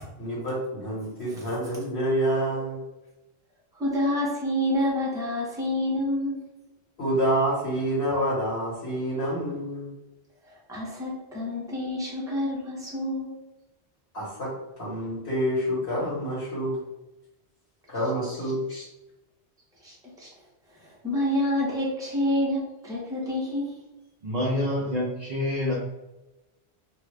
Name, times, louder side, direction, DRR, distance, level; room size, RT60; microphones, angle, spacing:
voice 1, 0.2-2.8 7.0-9.9 14.1-14.5 14.8-16.8 17.9-18.9, equal, 60° left, -8 dB, 1.7 m, -27 dB
voice 2, 3.7-6.4 10.5-13.3 19.8-20.3 20.8-23.7, left 1 dB, 5° right, -5 dB, 0.8 m, -28 dB
voice 3, 24.2-25.7, left 1 dB, 45° right, -6 dB, 0.7 m, -27 dB
2.8 x 2.4 x 3.2 m, 1.0 s
omnidirectional pair, 1.1 m